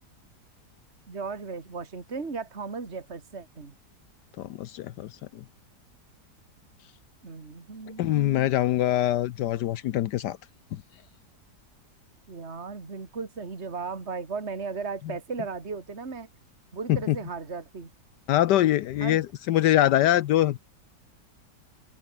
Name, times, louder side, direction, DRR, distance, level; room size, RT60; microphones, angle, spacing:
voice 1, 1.1-3.7 7.2-8.5 12.3-16.3 16.7-17.9 19.0-19.2, right 4 dB, 40° right, 2.8 m, -36 dB
voice 2, 4.4-5.4 8.0-10.4 10.7-10.8 17.1-17.2 18.3-20.6, left 13 dB, 80° left, 1.3 m, -24 dB
omnidirectional pair, 1.8 m